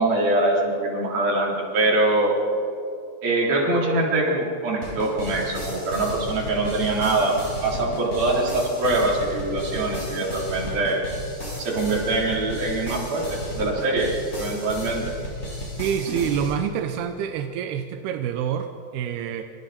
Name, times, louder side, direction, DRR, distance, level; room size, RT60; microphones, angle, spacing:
voice 1, 0.0-2.3 3.2-7.3 7.6-11.0 11.6-14.1 14.4-15.0, right 2 dB, 55° right, -3 dB, 5.4 m, -23 dB
sound 1, 4.8-16.5, left 1 dB, 15° left, 6.0 m, -34 dB
voice 2, 15.8-19.5, right 8 dB, 75° right, 6 dB, 2.5 m, -27 dB
28.0 x 26.0 x 4.4 m, 2.5 s
omnidirectional pair, 5.2 m